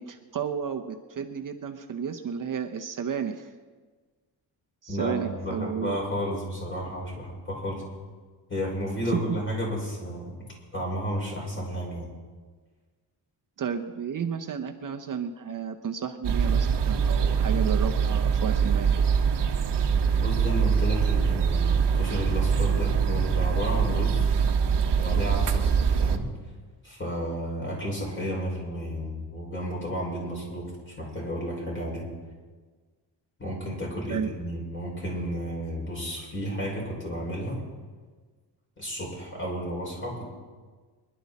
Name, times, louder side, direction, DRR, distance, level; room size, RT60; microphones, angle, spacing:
voice 1, 0.0-3.5 4.8-6.0 9.1-9.2 13.6-19.0 34.1-34.3, right 7 dB, 50° right, 5 dB, 0.9 m, -32 dB
voice 2, 4.9-7.8 8.5-10.4 10.7-12.1 20.1-24.3 25.0-26.3 26.8-32.1 33.4-37.6 38.8-40.3, equal, 25° left, -3 dB, 5.7 m, -32 dB
sound 1, 16.2-26.2, right 6 dB, 70° right, 1.2 m, -23 dB
25.0 x 11.5 x 4.2 m, 1.4 s
cardioid pair, 120°, 42 cm